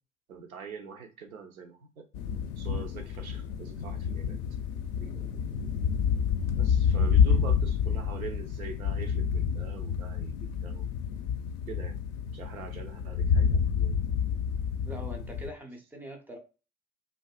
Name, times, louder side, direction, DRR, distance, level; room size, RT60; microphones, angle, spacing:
voice 1, 0.3-2.1 2.6-4.5 5.0-5.3 6.6-10.8 11.7-12.0 12.3-14.0, right 5 dB, 85° right, 4 dB, 0.5 m, -44 dB
sound 1, 2.1-15.5, left 7 dB, 55° left, 0.5 m, -28 dB
voice 2, 14.9-16.4, right 1 dB, 5° right, 3 dB, 0.3 m, -42 dB
2.5 x 2.3 x 2.3 m, 0.32 s
figure-of-eight pair, 60°, 42 cm